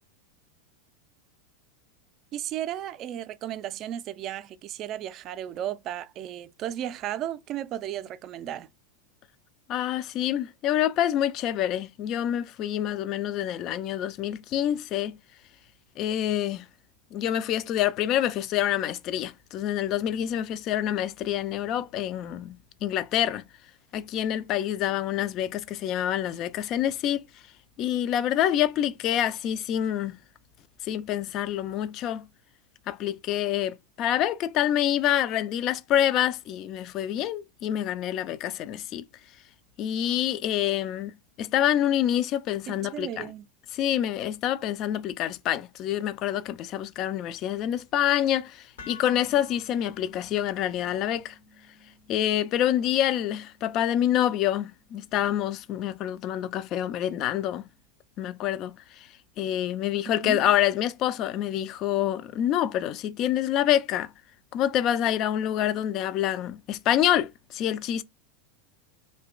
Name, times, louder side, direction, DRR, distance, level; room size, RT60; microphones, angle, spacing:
voice 1, 2.3-8.7 42.7-43.5 60.2-60.4, right 11 dB, 45° right, 0.3 m, -34 dB
voice 2, 9.7-15.1 16.0-16.7 17.1-23.4 23.9-27.2 27.8-30.2 30.8-32.2 32.9-39.1 39.8-43.3 43.7-51.4 52.1-57.7 58.2-59.1 59.4-64.1 64.5-68.0, left 11 dB, 45° left, 0.3 m, -27 dB
sound 1, 48.8-56.9, left 4 dB, 80° left, 0.9 m, -53 dB
2.8 x 2.1 x 2.3 m
hypercardioid pair, 95°, 0 cm